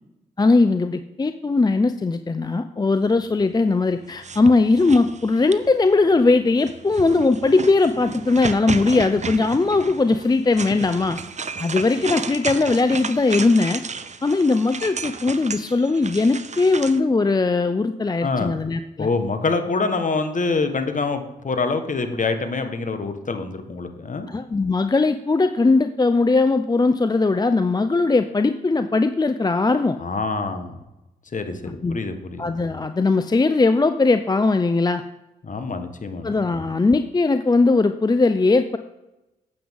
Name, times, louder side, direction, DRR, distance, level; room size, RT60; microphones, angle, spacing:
voice 1, 0.4-11.2 11.6-13.8 14.2-19.1 24.3-30.0 31.8-32.0 32.4-35.0 36.2-38.8, left 3 dB, 20° left, 10 dB, 0.5 m, -19 dB
sound 1, 4.1-5.8 6.6-17.0, right 5 dB, 40° right, 0.7 m, -33 dB
voice 2, 18.2-18.5 19.0-24.3 30.0-30.8 31.3-32.5 35.4-36.3, left 3 dB, 45° left, 8 dB, 1.3 m, -25 dB
9.3 x 7.9 x 3.6 m, 0.98 s
supercardioid pair, 40°, 18 cm